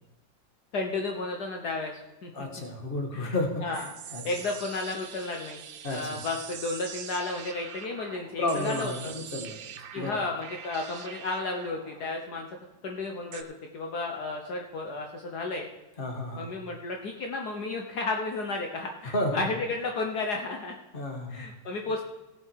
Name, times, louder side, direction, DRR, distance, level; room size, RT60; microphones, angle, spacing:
voice 1, 0.7-1.9 2.2-2.5 3.1-3.4 3.6-3.9 4.2-5.6 5.9-9.1 9.9-12.5 12.8-13.4 13.7-15.7 16.4-20.8 21.3-22.0, left 3 dB, 65° left, 2 dB, 1.5 m, -33 dB
voice 2, 2.3-3.8 4.1-4.2 5.8-6.2 8.4-9.6 10.0-10.2 16.0-16.6 19.0-19.5 20.9-21.4, left 1 dB, 30° left, 3 dB, 1.8 m, -32 dB
sound 1, 3.7-13.4, right 9 dB, 90° right, 1.5 m, -44 dB
17.0 x 7.4 x 4.6 m, 1.1 s
omnidirectional pair, 2.0 m